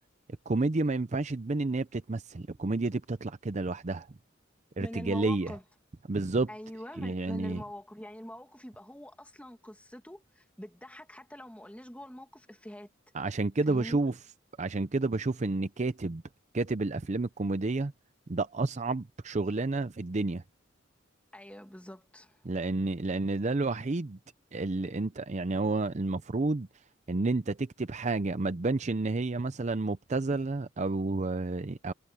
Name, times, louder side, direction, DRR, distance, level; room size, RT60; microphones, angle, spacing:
voice 1, 0.5-4.1 4.8-5.5 6.1-6.5 7.0-7.6 13.1-14.1 14.6-16.2 16.5-17.9 18.3-20.4 22.4-24.2 24.5-26.7 27.1-31.9, right 3 dB, 35° right, 0.6 m, -30 dB
voice 2, 4.8-5.6 6.5-12.9 13.7-14.0 21.3-22.4, equal, 5° left, 2.2 m, -44 dB
head